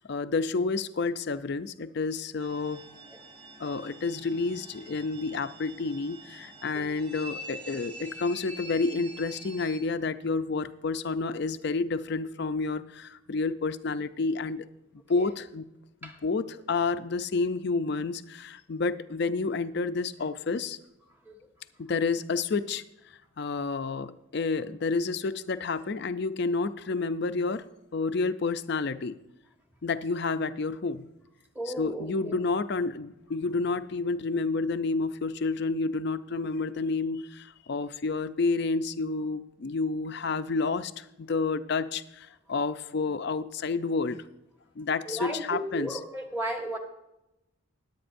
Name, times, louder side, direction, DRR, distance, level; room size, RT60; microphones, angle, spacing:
voice 1, 0.0-2.8 3.6-14.6 15.1-15.7 16.0-20.8 21.8-22.8 23.4-27.6 27.9-29.1 29.8-31.1 31.8-44.2 44.8-46.0, left 4 dB, 50° left, 12 dB, 0.5 m, -30 dB
sound 1, 2.4-9.8, equal, 25° right, 2.7 m, -46 dB
voice 2, 31.5-32.4 45.0-46.8, right 1 dB, 10° right, 2 dB, 1.3 m, -34 dB
21.0 x 8.5 x 2.6 m, 0.90 s
head